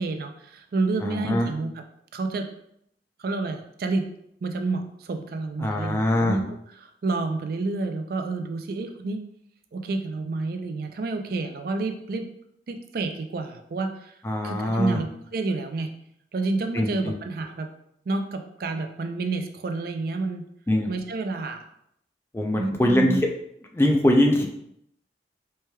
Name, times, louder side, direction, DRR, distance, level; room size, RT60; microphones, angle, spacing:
voice 1, 0.0-1.8 2.1-2.5 3.2-4.1 4.4-9.2 9.7-12.3 12.7-14.1 14.4-15.9 16.3-17.7 18.1-20.4 20.9-21.6 22.6-23.2, right 3 dB, 55° right, 6 dB, 0.4 m, -29 dB
voice 2, 1.0-1.5 5.6-6.4 14.2-15.0 16.7-17.1 20.7-20.9 22.3-23.2 23.7-24.5, left 1 dB, 15° left, 2 dB, 0.4 m, -22 dB
4.4 x 3.2 x 2.2 m, 0.73 s
head